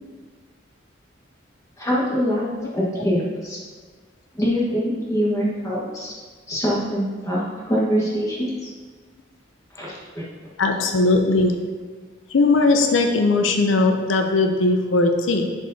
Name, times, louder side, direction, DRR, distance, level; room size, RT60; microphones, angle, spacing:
voice 1, 1.8-3.6 4.3-6.1 6.5-8.7 9.7-10.2, equal, 15° left, -5 dB, 1.2 m, -24 dB
voice 2, 10.6-11.6 12.3-15.5, left 3 dB, 80° left, 4 dB, 0.5 m, -19 dB
10.5 x 4.6 x 2.7 m, 1.5 s
head